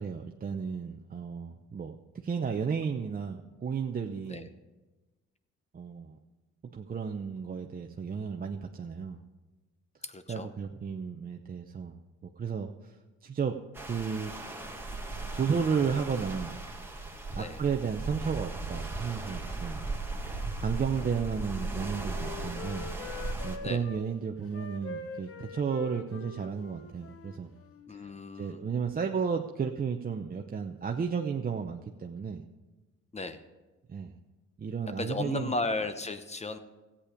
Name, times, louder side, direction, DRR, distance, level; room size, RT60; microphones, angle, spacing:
voice 1, 0.0-4.5 5.7-6.2 6.7-9.2 10.3-12.0 12.2-12.9 13.2-13.6 13.9-14.3 15.4-16.5 17.3-19.8 20.6-22.9 23.4-27.5 27.9-28.1 28.4-32.4 33.9-34.1 34.6-35.5, right 6 dB, 30° right, 3 dB, 0.7 m, -33 dB
voice 2, 10.0-10.5 17.3-17.6 23.6-23.8 27.9-28.6 33.1-33.4 35.0-36.6, left 3 dB, 20° left, 10 dB, 0.9 m, -35 dB
sound 1, 13.7-23.6, right 2 dB, 5° right, 1.8 m, -37 dB
Wind instrument woodwind instrument, 20.9-24.0 24.4-27.9, left 5 dB, 50° left, 1.1 m, -45 dB
14.0 x 8.6 x 5.1 m, 1.2 s
cardioid pair, 90°, 30 cm